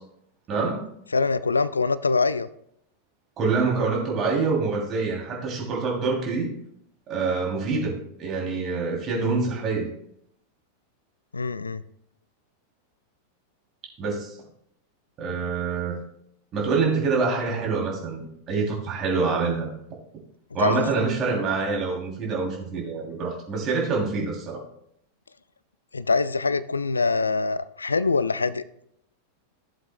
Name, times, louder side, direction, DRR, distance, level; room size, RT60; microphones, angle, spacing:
voice 1, 0.5-0.8 3.4-6.5 7.1-7.9 8.2-9.9 14.0-14.4 15.2-16.0 16.5-19.7 20.5-24.6, right 4 dB, 30° right, -1 dB, 2.8 m, -26 dB
voice 2, 1.1-2.5 11.3-11.8 20.6-20.8 25.9-28.6, left 4 dB, 75° left, 17 dB, 0.3 m, -24 dB
15.0 x 7.5 x 2.2 m, 0.73 s
figure-of-eight pair, 90°, 0 cm